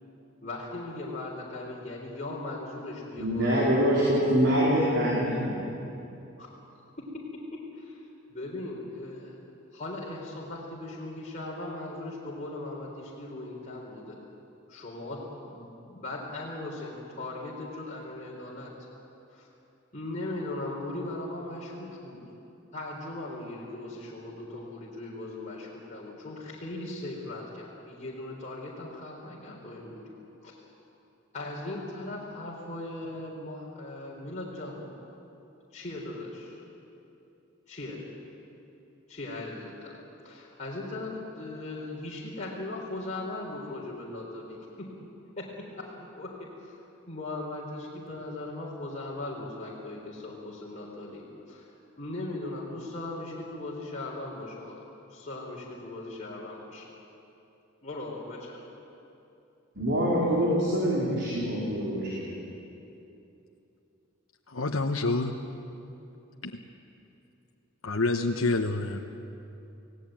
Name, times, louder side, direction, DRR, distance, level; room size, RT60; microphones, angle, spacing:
voice 1, 0.4-3.7 6.4-6.5 7.1-8.0 8.3-9.4 9.7-14.2 14.7-18.7 19.3-19.5 19.9-22.2 22.7-30.1 30.4-30.5 31.3-34.9 35.7-36.6 37.7-38.0 39.1-44.9 45.4-46.8 47.1-56.9 57.8-58.7, left 2 dB, 35° left, -5 dB, 4.2 m, -38 dB
voice 2, 3.2-5.6 59.7-62.3, equal, 60° right, -6 dB, 4.8 m, -25 dB
voice 3, 64.5-65.3 67.8-69.0, left 3 dB, 80° left, 2 dB, 1.2 m, -27 dB
28.5 x 18.0 x 9.0 m, 2.8 s
head